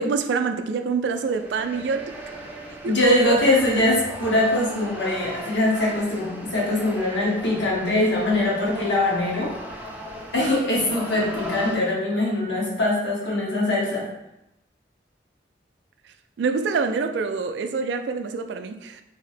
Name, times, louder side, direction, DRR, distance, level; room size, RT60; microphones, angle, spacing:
voice 1, 0.0-2.1 2.8-3.8 16.4-19.0, right 4 dB, 80° right, 9 dB, 0.3 m, -26 dB
sound 1, 1.1-11.8, equal, 10° right, 0.4 m, -37 dB
voice 2, 2.8-9.5 10.3-14.1, left 1 dB, 85° left, -5 dB, 1.3 m, -22 dB
3.4 x 2.1 x 4.0 m, 0.89 s
head